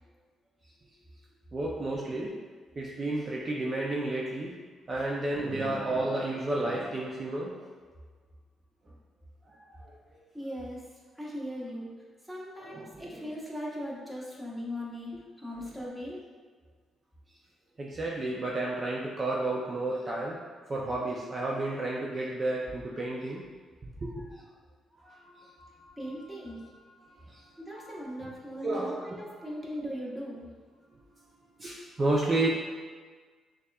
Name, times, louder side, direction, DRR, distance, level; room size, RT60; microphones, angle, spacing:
voice 1, 1.5-2.4 2.8-4.5 4.9-7.7 9.5-10.2 12.6-13.2 17.8-20.4 20.7-23.4 24.0-24.4 25.0-25.9 27.0-27.5 27.7-28.0 28.6-29.1 31.6-32.5, right 2 dB, 35° right, -4 dB, 0.5 m, -32 dB
voice 2, 10.3-11.9 12.2-15.1 15.4-16.2 26.0-26.7 27.6-30.5, equal, 5° right, -5 dB, 1.0 m, -39 dB
6.2 x 2.4 x 2.3 m, 1.5 s
cardioid pair, 90°, 0 cm